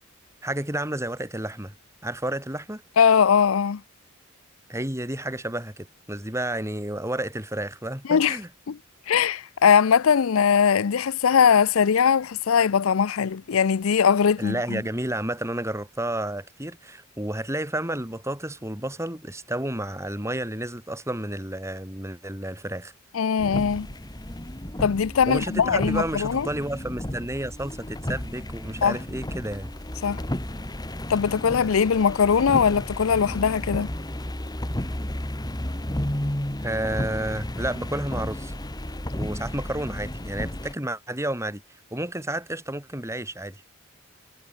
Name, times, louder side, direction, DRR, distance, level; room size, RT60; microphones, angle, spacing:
voice 1, 0.4-1.7 2.0-2.8 4.7-8.5 14.4-22.9 25.3-29.7 36.6-38.5 39.1-41.6 41.9-43.6, right 1 dB, 15° right, 6.2 m, -31 dB
voice 2, 3.0-3.8 8.1-8.4 8.7-8.8 9.1-14.8 23.1-23.9 24.8-26.5 28.8-29.0 30.0-30.2 31.1-33.9, left 7 dB, 80° left, 0.5 m, -20 dB
sound 1, 23.4-40.7, left 1 dB, 20° left, 1.8 m, -33 dB
head